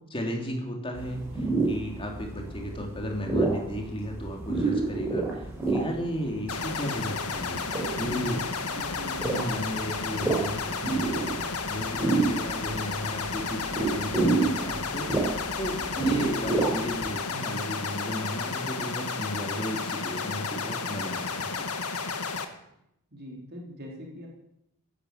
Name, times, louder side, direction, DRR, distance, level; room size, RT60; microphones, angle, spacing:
voice 1, 0.1-7.6 8.0-8.4 9.2-11.3 11.7-15.1 15.6-21.6, equal, 25° left, 1 dB, 3.0 m, -34 dB
sound 1, 0.9-17.1, right 3 dB, 10° right, 5.5 m, -30 dB
sound 2, 6.5-22.5, left 5 dB, 85° left, 1.7 m, -32 dB
voice 2, 8.0-8.4 8.7-9.2 23.1-24.3, equal, 45° right, -1 dB, 3.9 m, -41 dB
16.5 x 10.5 x 8.0 m, 0.79 s
head